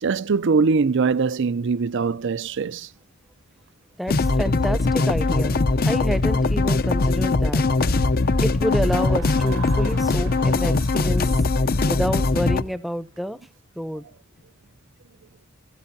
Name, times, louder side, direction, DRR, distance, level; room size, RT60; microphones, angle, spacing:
voice 1, 0.0-2.9, right 4 dB, 60° right, 0.5 m, -22 dB
voice 2, 4.0-7.6 8.4-11.3 11.9-13.4 13.8-14.0, equal, ahead, 0.7 m, -28 dB
sound 1, 4.1-12.6, left 3 dB, 45° left, 0.6 m, -21 dB
sound 2, 7.8-8.7 9.8-9.9 10.2-10.3 12.0-12.8 14.1-14.4, left 1 dB, 70° left, 2.4 m, -40 dB
sound 3, 8.5-13.2, right 6 dB, 90° right, 2.0 m, -42 dB
15.5 x 15.0 x 2.7 m
head